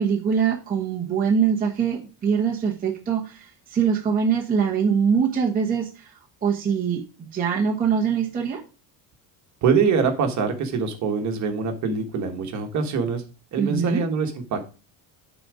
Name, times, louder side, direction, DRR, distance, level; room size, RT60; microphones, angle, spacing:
voice 1, 0.0-6.1 6.4-8.6 13.6-14.0, right 6 dB, 20° right, -3 dB, 1.0 m, -23 dB
voice 2, 9.6-13.2 13.5-14.6, right 5 dB, 40° right, 5 dB, 1.4 m, -24 dB
10.0 x 4.1 x 4.9 m, 0.33 s
cardioid pair, 160°, 44 cm